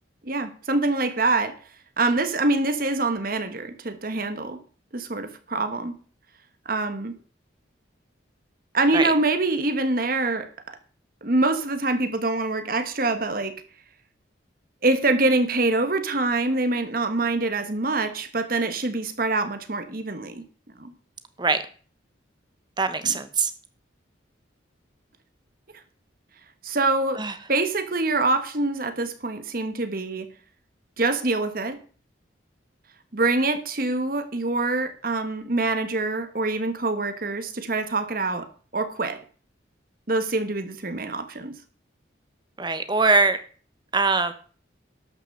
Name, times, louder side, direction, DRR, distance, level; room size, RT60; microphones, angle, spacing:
voice 1, 0.2-1.6 2.0-4.6 4.9-6.0 6.6-7.1 8.7-10.5 11.2-13.6 14.8-20.4 20.8-20.9 23.0-23.2 26.6-27.2 27.5-30.3 31.0-31.8 33.1-39.2 40.1-41.5, right 2 dB, 45° right, 1.3 m, -25 dB
voice 2, 22.8-23.5 27.2-27.3 42.6-43.4 43.9-44.3, right 3 dB, 20° right, 1.0 m, -22 dB
12.5 x 6.0 x 6.6 m
head